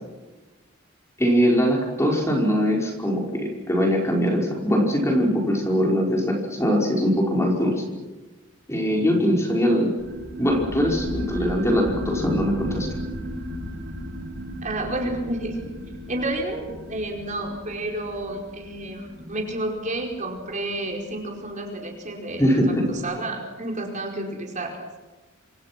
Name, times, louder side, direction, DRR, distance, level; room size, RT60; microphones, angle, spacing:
voice 1, 1.2-7.8 8.7-9.9 10.4-12.9 22.4-22.8, equal, 15° left, -1 dB, 5.3 m, -22 dB
sound 1, 10.0-21.1, left 1 dB, 60° right, 7.9 m, -35 dB
voice 2, 14.6-15.7 16.1-22.4 22.9-24.8, right 1 dB, 40° right, 1 dB, 4.8 m, -30 dB
27.5 x 26.5 x 6.1 m, 1.2 s
head